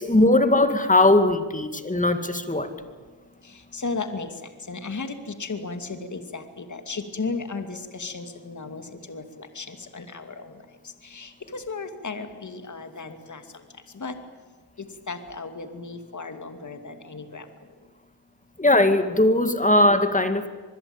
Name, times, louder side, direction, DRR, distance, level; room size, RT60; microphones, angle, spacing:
voice 1, 0.0-2.7 18.6-20.5, left 1 dB, 15° left, 8 dB, 2.4 m, -19 dB
voice 2, 3.7-4.3 4.7-5.1 5.4-8.8 9.1-9.2 9.5-10.5 11.0-13.4 13.9-14.2 15.1-17.5, left 4 dB, 40° left, 7 dB, 2.6 m, -34 dB
25.0 x 21.0 x 8.9 m, 1.4 s
cardioid pair, 75°, 44 cm